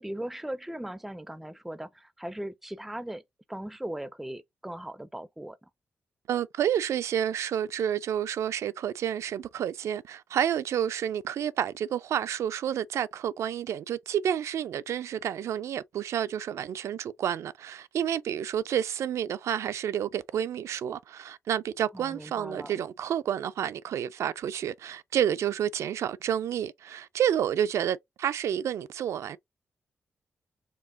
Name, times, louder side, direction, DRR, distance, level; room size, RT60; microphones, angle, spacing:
voice 1, 0.0-3.2 3.5-5.7 21.9-22.7, right 1 dB, 5° right, 0.4 m, -38 dB
voice 2, 6.3-29.4, right 9 dB, 80° right, 0.3 m, -30 dB
4.5 x 2.8 x 2.6 m
wide cardioid pair, 125°, 5 cm